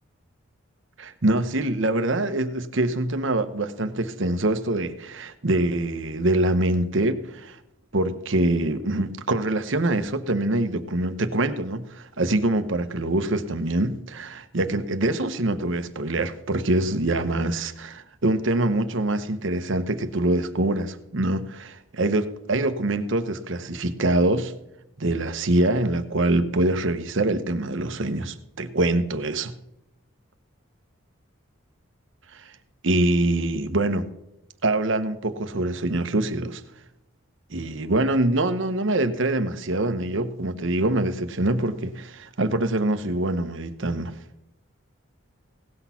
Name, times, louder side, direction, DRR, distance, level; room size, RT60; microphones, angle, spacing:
voice 1, 1.0-7.6 7.9-24.5 25.0-29.5 32.3-32.5 32.8-34.1 34.6-36.6 37.5-44.2, right 2 dB, 65° right, 0.9 m, -24 dB
17.5 x 6.2 x 5.7 m
head